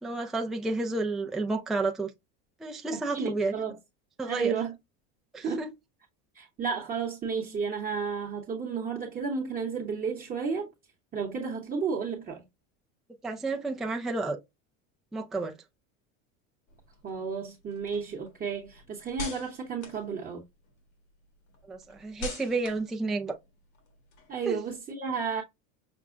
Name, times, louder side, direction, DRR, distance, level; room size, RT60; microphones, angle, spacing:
voice 1, 0.0-2.1 2.6-3.5 4.2-4.5 5.3-5.7 13.2-14.4 15.1-15.5 21.7-23.4 24.4-24.6, right 3 dB, ahead, 0.4 m, -31 dB
voice 2, 2.9-3.8 4.2-4.7 5.4-5.7 6.3-10.7 11.1-12.4 17.0-20.4 24.3-25.4, right 5 dB, 25° right, 0.9 m, -32 dB
sound 1, 16.7-20.8 21.2-24.7, left 2 dB, 70° left, 1.6 m, -44 dB
6.0 x 2.0 x 2.5 m
supercardioid pair, 130°, 35 cm